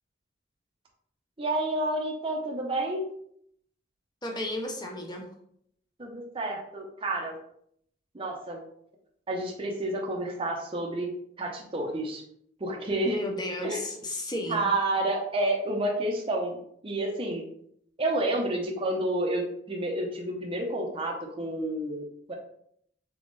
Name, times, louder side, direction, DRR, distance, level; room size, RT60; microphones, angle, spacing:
voice 1, 1.4-3.1 6.0-7.3 8.1-8.6 9.3-11.1 11.4-12.2 12.6-13.2 13.6-13.8 14.5-16.6 16.8-17.5 18.0-22.3, right 1 dB, 30° right, -1 dB, 0.7 m, -30 dB
voice 2, 4.2-5.3 13.1-14.7, left 1 dB, 25° left, 2 dB, 0.8 m, -33 dB
3.7 x 3.6 x 3.9 m, 0.69 s
head